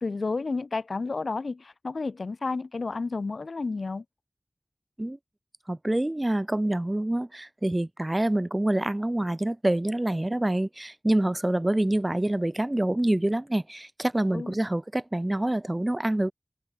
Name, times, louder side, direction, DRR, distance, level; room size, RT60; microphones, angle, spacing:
voice 1, 0.0-4.0 14.3-14.5, left 3 dB, 90° left, 1.4 m, -31 dB
voice 2, 5.7-16.3, right 1 dB, 25° right, 1.1 m, -26 dB
open air
wide cardioid pair, 60°, 0 cm